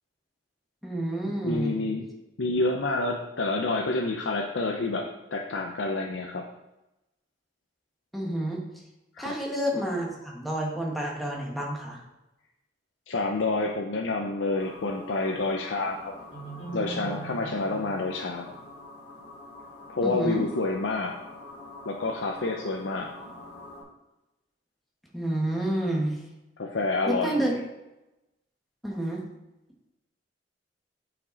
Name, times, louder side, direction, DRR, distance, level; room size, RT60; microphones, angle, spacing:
voice 1, 0.8-1.8 8.1-8.6 9.2-12.0 20.0-20.4 25.1-26.2 27.1-27.5 28.8-29.2, right 1 dB, ahead, -2 dB, 1.4 m, -29 dB
voice 2, 1.4-2.1 2.4-6.4 9.1-9.4 13.1-16.1 16.7-18.5 19.9-21.2 21.8-23.1 26.6-27.6, left 3 dB, 90° left, 1 dB, 0.7 m, -28 dB
sound 1, 14.6-23.8, equal, 30° left, 2.8 m, -43 dB
8.5 x 5.2 x 3.9 m, 0.98 s
head